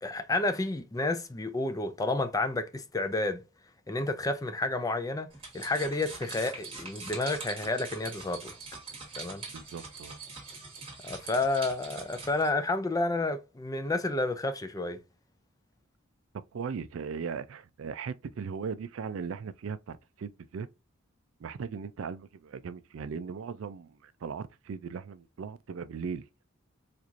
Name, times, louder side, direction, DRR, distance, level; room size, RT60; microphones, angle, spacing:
voice 1, 0.0-3.4 3.9-8.5 9.2-9.4 11.0-15.0, left 2 dB, 15° left, 0.4 m, -30 dB
sound 1, 5.3-12.5, right 4 dB, 25° right, 1.5 m, -43 dB
voice 2, 9.5-10.2 16.5-20.7 21.4-26.2, right 6 dB, 75° right, 0.4 m, -38 dB
4.5 x 2.5 x 2.5 m
head